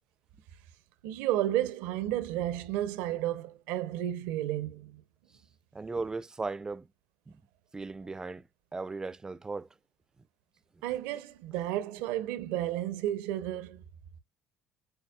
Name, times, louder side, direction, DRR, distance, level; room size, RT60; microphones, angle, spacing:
voice 1, 1.0-5.0 10.8-13.8, right 13 dB, 75° right, 0.6 m, -32 dB
voice 2, 5.7-6.9 7.3-7.4 7.7-8.5 8.7-9.7 10.7-10.8, right 3 dB, 20° right, 0.4 m, -37 dB
6.6 x 2.3 x 2.2 m
hypercardioid pair, 65°, 3 cm